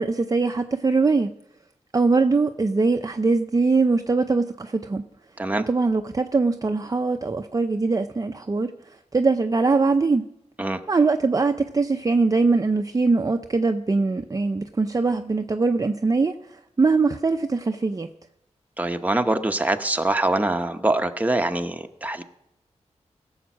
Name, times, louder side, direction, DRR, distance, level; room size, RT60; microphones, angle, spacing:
voice 1, 0.0-1.3 1.9-5.1 5.7-8.7 9.1-10.3 10.9-18.1, right 3 dB, 30° right, 6 dB, 0.6 m, -22 dB
voice 2, 18.8-22.2, right 2 dB, 15° right, 6 dB, 1.0 m, -24 dB
16.0 x 7.3 x 6.1 m, 0.83 s
cardioid pair, 70°, 12 cm